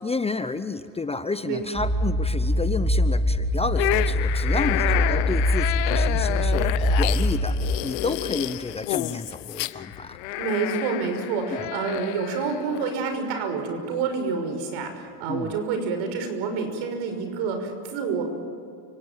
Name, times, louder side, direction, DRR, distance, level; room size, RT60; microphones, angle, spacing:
voice 1, 0.0-10.2 11.5-11.7 15.3-15.5, left 3 dB, 10° left, 11 dB, 0.8 m, -31 dB
sound 1, 1.7-7.8, left 1 dB, 15° right, 2.9 m, -23 dB
sound 2, 3.7-12.9, left 18 dB, 80° left, 1.0 m, -30 dB
voice 2, 10.4-18.2, right 5 dB, 70° right, 6 dB, 5.9 m, -28 dB
30.0 x 18.0 x 9.1 m, 2.6 s
supercardioid pair, 110°, 49 cm